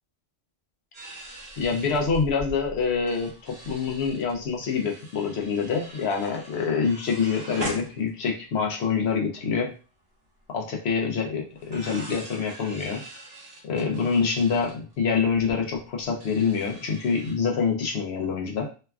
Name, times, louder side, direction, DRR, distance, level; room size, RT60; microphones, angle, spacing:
sound 1, 0.9-8.6 8.8-8.9 9.1-9.5 10.9-11.0 11.6-17.3, right 1 dB, 55° right, 1.2 m, -42 dB
voice 1, 1.6-9.7 10.5-13.0 13.7-18.7, left 5 dB, 65° left, 1 dB, 0.8 m, -26 dB
3.1 x 2.2 x 2.3 m, 0.35 s
omnidirectional pair, 1.3 m